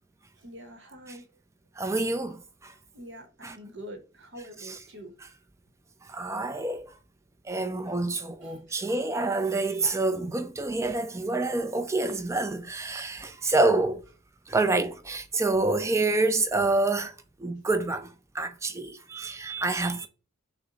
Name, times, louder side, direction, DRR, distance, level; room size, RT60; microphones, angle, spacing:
voice 1, 0.4-1.2 2.9-5.1 8.4-8.8, equal, 55° right, 0.9 m, -45 dB
voice 2, 1.8-2.7 3.4-3.6 4.6-4.8 5.2-5.3 6.1-6.9 7.5-14.0 14.5-17.1 17.4-20.1, right 2 dB, 15° right, 0.4 m, -27 dB
5.9 x 2.1 x 3.8 m
head